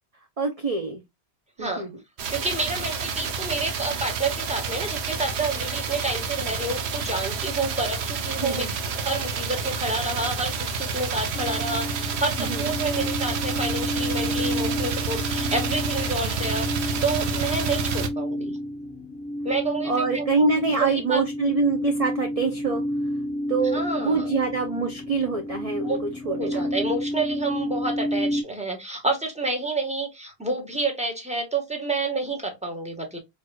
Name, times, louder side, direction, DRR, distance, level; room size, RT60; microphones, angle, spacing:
voice 1, 0.4-1.0 1.6-1.9 8.4-8.7 12.4-12.7 16.2-16.3 19.8-22.8 23.5-26.7, right 4 dB, 40° right, 0.7 m, -25 dB
sound 1, 2.2-18.1, right 5 dB, 75° right, 1.0 m, -29 dB
voice 2, 2.3-8.6 9.0-18.6 19.4-21.2 23.7-24.3 25.8-26.0 26.3-33.2, right 3 dB, 5° right, 1.2 m, -29 dB
sound 2, 11.3-28.4, equal, 10° left, 0.5 m, -30 dB
4.6 x 2.9 x 2.2 m
omnidirectional pair, 1.1 m